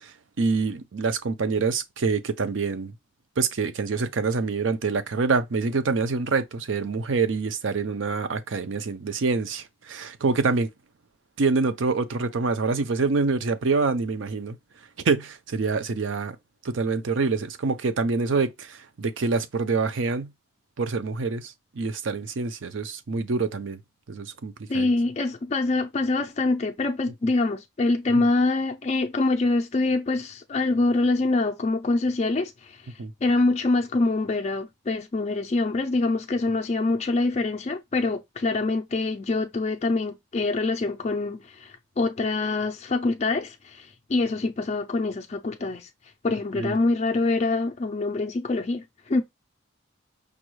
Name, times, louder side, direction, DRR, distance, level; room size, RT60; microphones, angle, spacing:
voice 1, 0.0-2.9 3.4-10.7 11.4-14.6 15.0-16.4 16.6-20.3 20.8-23.8 24.1-24.9 28.2-28.3 33.0-33.1 46.6-46.7, right 4 dB, 70° right, 0.5 m, -26 dB
voice 2, 24.7-32.9 33.2-45.9 46.2-49.2, left 2 dB, 35° left, 0.4 m, -25 dB
5.1 x 2.2 x 3.1 m
head